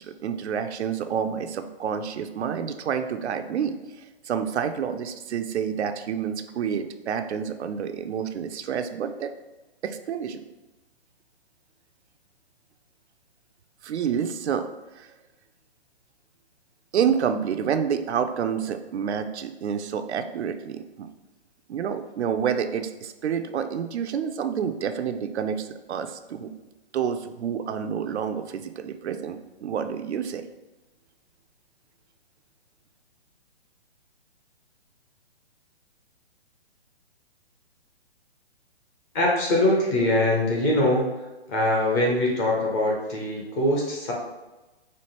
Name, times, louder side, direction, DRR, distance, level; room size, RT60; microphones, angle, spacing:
voice 1, 0.0-9.3 9.8-10.4 13.8-14.7 15.0-15.1 16.9-21.1 21.7-26.5 26.9-30.4, right 7 dB, 85° right, 8 dB, 0.5 m, -28 dB
voice 2, 39.1-41.1 41.5-44.1, left 1 dB, 15° left, -2 dB, 0.5 m, -23 dB
4.4 x 2.5 x 2.9 m, 1.1 s
hypercardioid pair, 145°, 33 cm